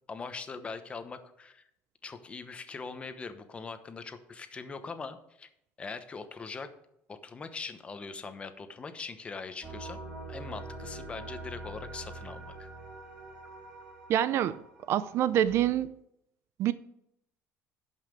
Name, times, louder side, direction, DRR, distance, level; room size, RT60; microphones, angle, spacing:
voice 1, 0.1-1.6 2.0-5.5 5.8-6.7 7.1-10.0 10.3-12.7, left 4 dB, 20° left, 1.0 m, -41 dB
sound 1, 9.6-15.7, right 2 dB, 15° right, 2.8 m, -44 dB
voice 2, 14.1-14.6 14.9-15.9 16.6-16.7, right 11 dB, 50° right, 0.5 m, -26 dB
11.0 x 5.7 x 6.8 m
cardioid pair, 155°, 6 cm